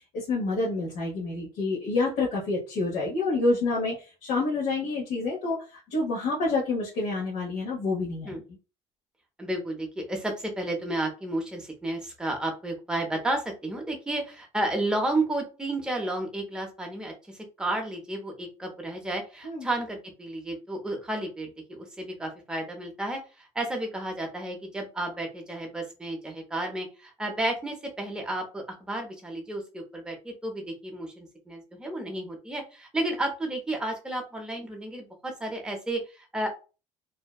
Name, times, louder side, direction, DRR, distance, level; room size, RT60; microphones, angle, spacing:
voice 1, 0.0-8.4 19.4-19.7, left 3 dB, 75° left, -4 dB, 0.9 m, -28 dB
voice 2, 9.4-17.1 17.6-36.5, right 1 dB, 5° right, 2 dB, 0.6 m, -32 dB
2.6 x 2.1 x 2.2 m, 0.32 s
cardioid pair, 150°, 13 cm